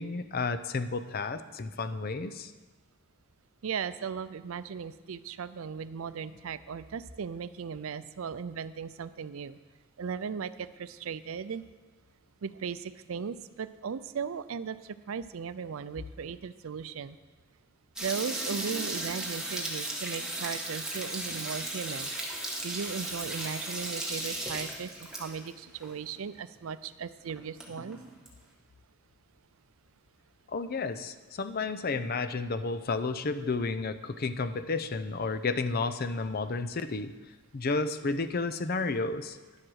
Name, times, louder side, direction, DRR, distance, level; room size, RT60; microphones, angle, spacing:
voice 1, 0.0-2.5 30.5-37.1 37.5-39.4, left 3 dB, 45° left, 10 dB, 0.6 m, -32 dB
voice 2, 3.6-9.6 10.0-11.6 12.4-17.2 18.0-22.1 22.6-28.0, right 6 dB, 75° right, 14 dB, 0.4 m, -37 dB
sound 1, 18.0-25.5 25.8-25.9 26.2-26.3 26.8-26.9 27.2-28.3, right 1 dB, 5° right, 1.5 m, -36 dB
10.5 x 7.7 x 6.3 m, 1.2 s
head